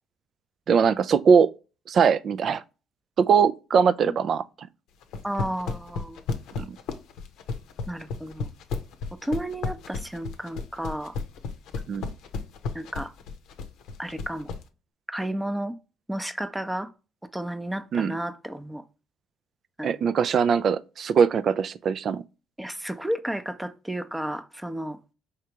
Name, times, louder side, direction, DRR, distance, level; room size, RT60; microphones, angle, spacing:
voice 1, 0.7-1.5 1.9-2.6 3.2-4.7 6.6-6.8 11.9-12.1 17.9-18.1 19.8-22.2, right 6 dB, 55° right, 0.4 m, -21 dB
sound 1, 5.0-14.6, left 4 dB, 75° left, 0.6 m, -32 dB
voice 2, 5.2-6.3 7.9-8.5 9.2-11.2 12.7-13.1 14.0-14.5 15.1-15.8 16.1-16.9 17.3-18.8 19.8-20.0 22.6-25.0, right 1 dB, 10° right, 0.6 m, -32 dB
4.9 x 3.3 x 2.8 m
hypercardioid pair, 60°, 0 cm